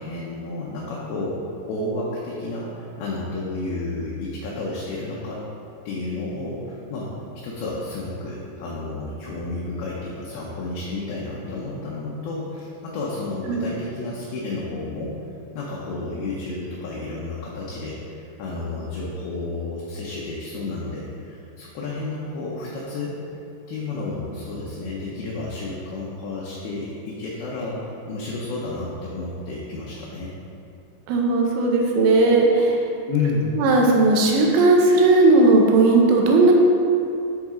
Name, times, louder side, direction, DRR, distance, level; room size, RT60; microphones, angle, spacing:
voice 1, 0.0-5.4 5.9-15.2 15.5-23.1 23.7-30.3 33.1-33.5, left 2 dB, 75° left, -5 dB, 2.3 m, -31 dB
voice 2, 31.1-32.8 33.6-36.5, right 2 dB, 80° right, 0 dB, 3.0 m, -16 dB
9.4 x 4.1 x 3.7 m, 2.6 s
omnidirectional pair, 5.2 m